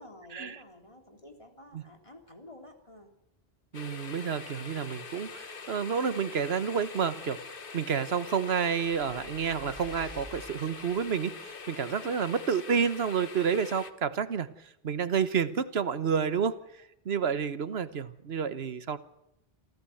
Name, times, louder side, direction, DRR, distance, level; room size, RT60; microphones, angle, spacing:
voice 1, 0.0-3.1 12.2-12.4, left 1 dB, 30° left, 4 dB, 3.4 m, -51 dB
sound 1, 3.7-13.9, left 4 dB, 60° left, 1.4 m, -44 dB
voice 2, 3.7-7.4 7.7-14.5 14.8-16.6 17.0-19.0, right 6 dB, 80° right, 13 dB, 1.4 m, -29 dB
sound 2, 8.8-11.2, equal, 25° right, 7.8 m, -50 dB
27.5 x 15.0 x 7.8 m, 0.84 s
omnidirectional pair, 1.0 m